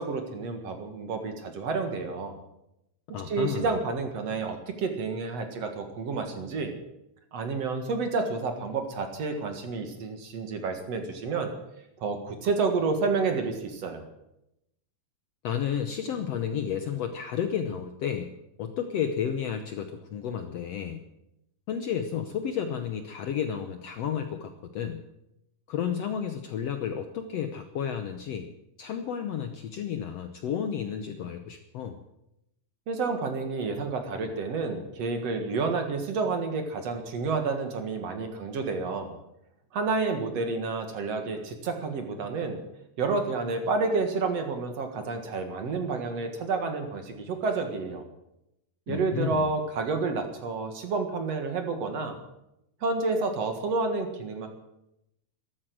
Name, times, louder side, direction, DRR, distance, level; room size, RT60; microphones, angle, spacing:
voice 1, 0.0-2.4 3.3-6.8 7.3-11.5 12.0-14.0 32.9-39.2 39.7-42.6 43.0-48.0 48.9-52.2 52.8-54.5, right 4 dB, 55° right, 6 dB, 2.6 m, -30 dB
voice 2, 3.1-3.7 15.4-18.3 18.6-21.0 21.7-25.0 25.7-28.5 28.8-32.0 48.9-49.4, left 8 dB, 65° left, 7 dB, 1.6 m, -32 dB
13.5 x 13.5 x 7.8 m, 0.85 s
omnidirectional pair, 3.8 m